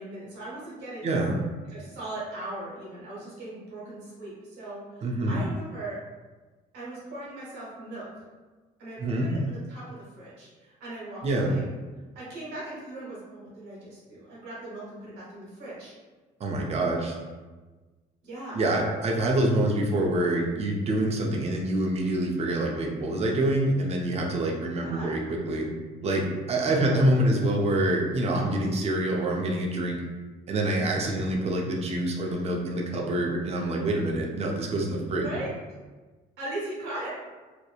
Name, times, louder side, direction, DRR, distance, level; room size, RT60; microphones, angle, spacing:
voice 1, 0.0-1.1 1.7-6.0 6.7-8.2 8.8-11.7 12.1-15.9 18.2-18.6 24.8-25.1 26.5-27.5 35.2-35.5 36.4-37.1, right 1 dB, 75° right, -7 dB, 1.3 m, -39 dB
voice 2, 1.0-1.4 5.0-5.4 9.0-9.3 11.2-11.5 16.4-17.2 18.5-25.7 26.0-30.0 30.5-35.3, right 1 dB, 40° right, 0 dB, 0.5 m, -26 dB
2.9 x 2.1 x 2.3 m, 1.3 s
cardioid pair, 110°, 17 cm